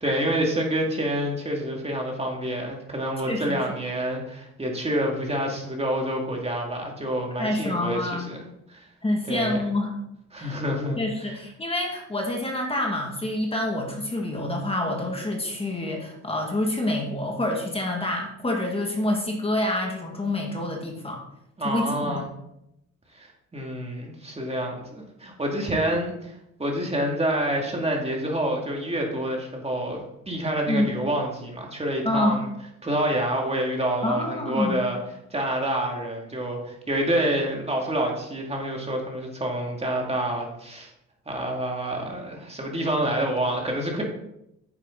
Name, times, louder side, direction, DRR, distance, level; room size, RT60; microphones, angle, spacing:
voice 1, 0.0-8.4 8.7-8.9 9.3-9.6 10.3-11.3 21.6-22.2 23.1-32.5 32.8-35.0 35.3-40.9 41.3-44.0, right 1 dB, 20° right, 0 dB, 2.2 m, -27 dB
voice 2, 3.3-3.6 7.4-8.3 9.0-9.9 10.4-10.6 11.0-21.2 21.6-22.3 25.8-25.9 30.7-30.9 32.1-32.4 34.0-34.8, left 1 dB, 20° left, 0 dB, 1.9 m, -27 dB
9.4 x 7.3 x 3.8 m, 0.81 s
cardioid pair, 90°, 30 cm